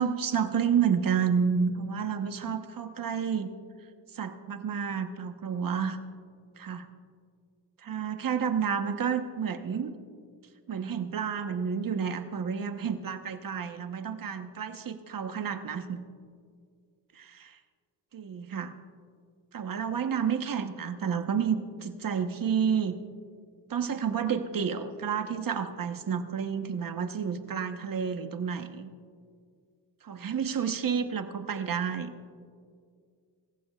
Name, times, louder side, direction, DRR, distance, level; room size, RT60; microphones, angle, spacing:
voice 1, 0.0-3.5 4.1-6.0 6.6-6.9 7.9-9.9 10.7-16.0 18.1-18.7 19.5-23.0 23.7-28.9 30.0-32.1, right 7 dB, 50° right, 7 dB, 1.1 m, -30 dB
25.5 x 15.0 x 2.4 m, 2.2 s
cardioid pair, 90°, 43 cm